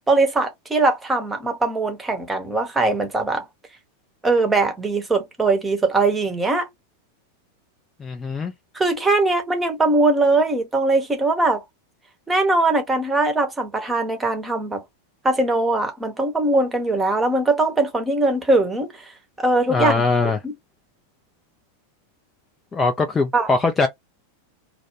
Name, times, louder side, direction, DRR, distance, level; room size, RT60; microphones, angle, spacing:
voice 1, 0.1-3.4 4.2-6.7 8.7-11.6 12.3-14.8 15.2-19.1 19.4-20.0 20.4-20.5 23.3-23.5, right 2 dB, 10° right, 0.9 m, -21 dB
voice 2, 8.0-8.5 19.7-20.4 22.7-23.9, left 3 dB, 20° left, 0.4 m, -21 dB
2.3 x 2.2 x 3.0 m
figure-of-eight pair, 90°, 0 cm